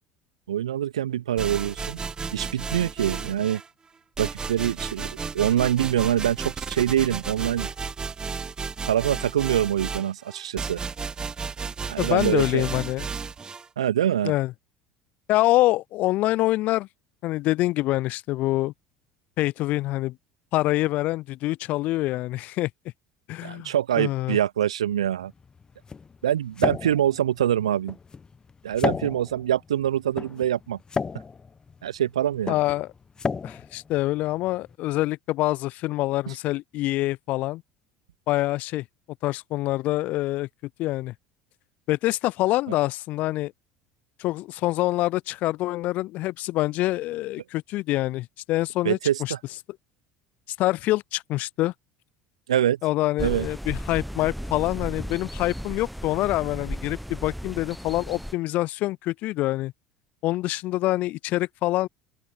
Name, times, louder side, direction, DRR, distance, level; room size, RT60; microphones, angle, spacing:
voice 1, 0.5-2.0 2.3-3.6 4.2-5.1 5.3-7.7 8.9-10.8 11.9-12.6 13.8-14.3 23.4-25.3 26.2-28.0 28.6-30.8 31.8-32.6 48.8-49.4 52.5-52.8 53.2-53.5, right 11 dB, 75° right, 0.6 m, -24 dB
sound 1, 1.4-3.7 4.2-13.7, right 5 dB, 25° right, 1.0 m, -33 dB
voice 2, 12.0-13.1 14.2-14.5 15.3-16.9 17.2-18.7 19.4-20.2 20.5-22.7 23.3-24.4 32.5-32.9 33.4-37.6 38.3-38.8 39.2-40.5 40.8-41.1 41.9-43.5 44.2-49.3 50.6-51.7 52.8-59.7 60.2-61.9, left 17 dB, 55° left, 0.5 m, -25 dB
sound 2, 24.9-34.7, left 5 dB, 25° left, 1.3 m, -34 dB
sound 3, 53.2-58.3, equal, ahead, 0.8 m, -35 dB
open air
figure-of-eight pair, 65°, 3 cm